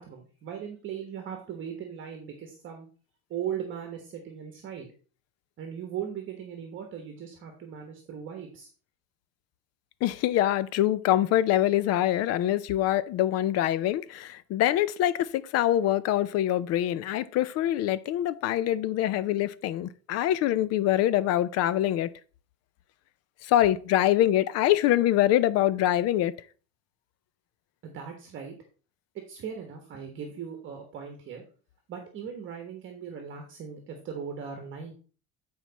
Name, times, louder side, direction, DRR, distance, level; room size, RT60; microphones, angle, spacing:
voice 1, 0.0-2.9 3.3-4.9 5.6-8.7 27.8-28.5 29.3-31.4 31.9-34.9, right 8 dB, 40° right, 1.3 m, -38 dB
voice 2, 10.0-22.1 23.4-26.3, left 13 dB, 50° left, 0.4 m, -24 dB
9.2 x 4.7 x 4.0 m
cardioid pair, 165°, 32 cm